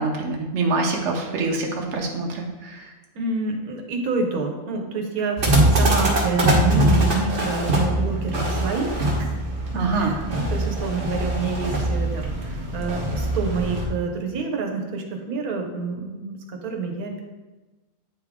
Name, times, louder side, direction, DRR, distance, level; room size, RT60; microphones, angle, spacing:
voice 1, 0.0-2.9 9.7-10.1, right 3 dB, 60° right, 0 dB, 1.2 m, -25 dB
voice 2, 3.1-9.4 9.7-17.2, right 3 dB, 90° right, 2 dB, 1.3 m, -28 dB
sound 1, 5.4-13.9, right 1 dB, 40° right, 1.2 m, -22 dB
9.0 x 3.6 x 3.5 m, 1.2 s
omnidirectional pair, 1.5 m